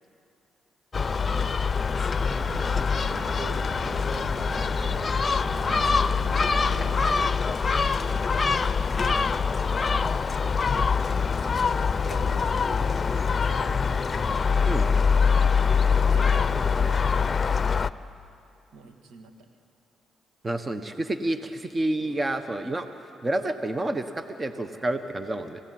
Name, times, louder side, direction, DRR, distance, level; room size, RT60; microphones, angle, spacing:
Gull seagull, 0.9-17.9, left 5 dB, 40° left, 0.6 m, -24 dB
voice 1, 1.3-1.6 2.9-3.7 5.3-10.5 11.4-14.3 14.8-15.1 16.0-17.6 18.7-19.5 22.0-22.2, right 4 dB, 75° right, 5 dB, 2.1 m, -45 dB
sound 1, 2.2-7.3, right 6 dB, 60° right, 0.6 m, -40 dB
voice 2, 20.4-22.9 23.2-25.6, right 1 dB, 30° right, 9 dB, 1.4 m, -29 dB
26.5 x 16.5 x 9.6 m, 2.7 s
supercardioid pair, 55°, 0 cm